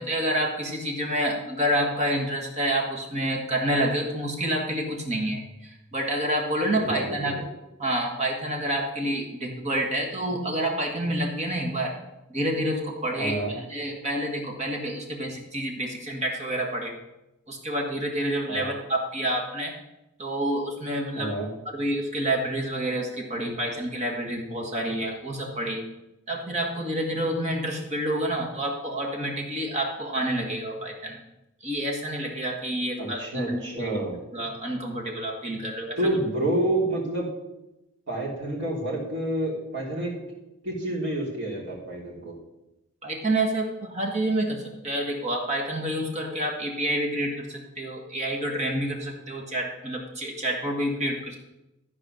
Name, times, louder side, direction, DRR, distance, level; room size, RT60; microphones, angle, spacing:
voice 1, 0.0-7.3 7.8-11.9 12.3-16.9 17.5-19.7 20.2-21.3 21.7-25.8 26.3-31.2 31.6-34.0 34.3-36.0 43.0-51.4, right 1 dB, 30° right, 0 dB, 1.8 m, -28 dB
voice 2, 6.7-7.4 13.2-13.5 18.5-18.7 21.1-21.5 33.0-34.2 36.0-37.3 38.1-40.2 40.6-42.3, right 1 dB, 55° right, -4 dB, 3.3 m, -28 dB
13.0 x 4.8 x 6.5 m, 0.95 s
head